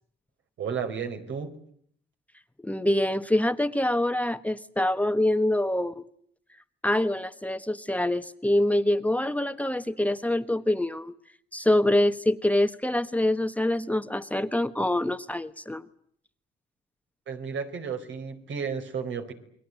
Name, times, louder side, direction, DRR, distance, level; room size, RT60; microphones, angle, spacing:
voice 1, 0.6-1.5 17.3-19.3, right 6 dB, 70° right, 5 dB, 4.7 m, -33 dB
voice 2, 2.6-5.9 6.8-11.1 11.5-15.9, left 1 dB, 5° left, 9 dB, 1.3 m, -25 dB
29.0 x 22.0 x 9.3 m, 0.65 s
cardioid pair, 90°, 20 cm